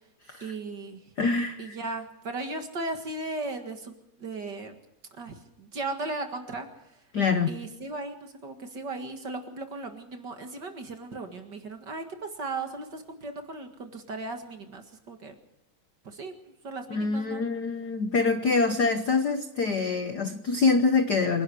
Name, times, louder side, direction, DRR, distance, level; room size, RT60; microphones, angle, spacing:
voice 1, 0.4-1.0 1.6-4.7 5.2-6.7 7.5-15.3 16.0-16.3 16.6-17.4 18.7-18.8, right 3 dB, 40° right, 6 dB, 2.1 m, -36 dB
voice 2, 1.2-1.8 7.1-7.5 16.9-21.4, left 4 dB, 65° left, 9 dB, 1.0 m, -25 dB
27.0 x 11.5 x 8.3 m, 0.83 s
omnidirectional pair, 3.3 m